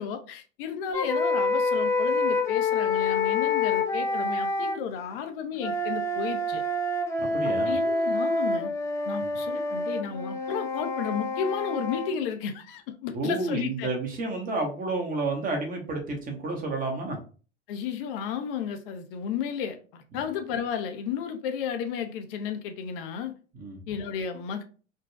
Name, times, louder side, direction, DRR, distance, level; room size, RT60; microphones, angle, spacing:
voice 1, 0.0-6.6 7.4-8.7 9.1-13.9 17.7-23.3 23.9-24.6, left 7 dB, 50° left, 0.7 m, -33 dB
sound 1, 0.9-4.8 5.6-12.1, left 3 dB, 10° left, 0.4 m, -27 dB
voice 2, 7.2-7.7 13.1-17.2 20.1-20.2 23.5-23.8, right 2 dB, 25° right, 1.1 m, -30 dB
3.8 x 2.3 x 2.3 m
figure-of-eight pair, 80°, 35 cm